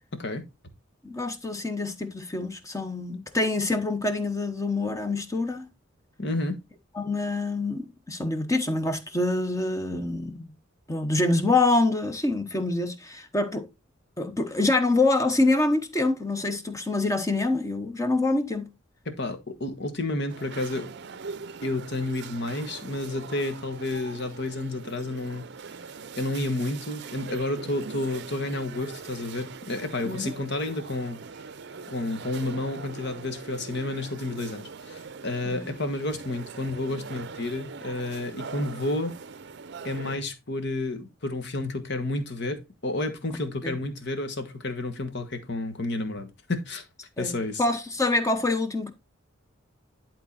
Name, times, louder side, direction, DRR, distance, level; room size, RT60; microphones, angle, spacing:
voice 1, 0.1-0.4 6.2-6.6 19.0-20.9 21.6-25.4 26.2-31.3 31.9-39.1 39.8-46.8 47.2-47.6, left 2 dB, 55° left, 1.5 m, -31 dB
voice 2, 1.0-5.7 6.9-10.5 10.9-13.7 14.2-18.7 30.0-30.3 35.4-35.7 43.6-43.8 47.2-48.9, left 2 dB, 15° left, 1.0 m, -26 dB
sound 1, 20.3-40.2, right 5 dB, 55° right, 0.6 m, -42 dB
11.5 x 3.8 x 4.2 m
head